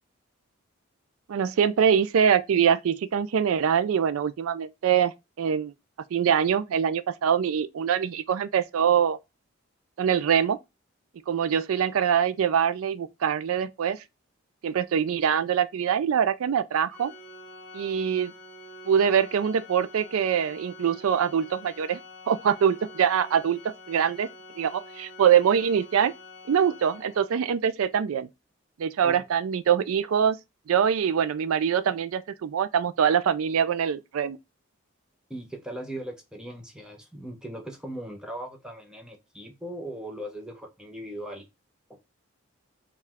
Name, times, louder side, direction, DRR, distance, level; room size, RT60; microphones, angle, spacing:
voice 1, 1.3-5.7 6.1-9.2 10.0-10.6 11.3-14.0 14.6-17.1 17.7-18.3 18.9-22.0 22.3-24.3 24.6-26.1 26.5-28.3 28.8-30.4 30.7-34.4, right 8 dB, 80° right, 0.4 m, -24 dB
Organ, 16.9-27.6, left 2 dB, 35° left, 1.6 m, -47 dB
voice 2, 35.3-41.5 41.9-42.0, right 1 dB, 5° right, 0.7 m, -39 dB
4.5 x 2.4 x 3.5 m
head